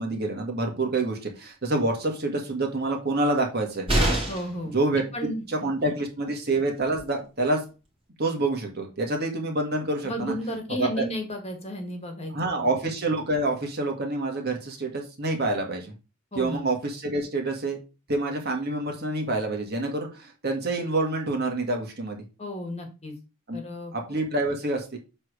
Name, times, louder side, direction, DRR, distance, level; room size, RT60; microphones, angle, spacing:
voice 1, 0.0-3.9 4.7-5.0 5.5-7.6 8.2-10.3 10.8-11.0 12.3-15.9 16.3-17.8 18.1-22.2 23.5-23.6 23.9-25.0, right 2 dB, 45° right, 2 dB, 1.7 m, -27 dB
sound 1, 3.9-4.6 6.6-6.7 7.0-7.1, right 1 dB, 25° right, 2.3 m, -24 dB
voice 2, 4.3-4.7 5.1-5.9 10.0-12.7 16.3-16.6 22.4-23.1 23.5-23.9, equal, 30° left, 4 dB, 1.6 m, -33 dB
7.5 x 3.4 x 6.1 m, 0.30 s
head